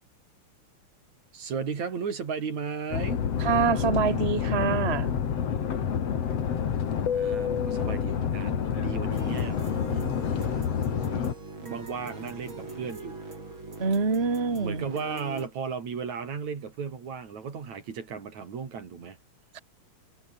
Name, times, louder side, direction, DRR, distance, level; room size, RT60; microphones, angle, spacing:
voice 1, 1.3-3.2 7.1-10.2 11.6-13.2 14.5-19.2, right 6 dB, 65° right, 4.6 m, -35 dB
sound 1, 2.9-11.3, left 8 dB, 55° left, 3.1 m, -28 dB
voice 2, 3.4-5.1 13.8-14.9 19.5-19.6, right 5 dB, 20° right, 2.3 m, -25 dB
sound 2, 9.1-15.5, right 3 dB, 40° right, 7.0 m, -42 dB
omnidirectional pair, 3.5 m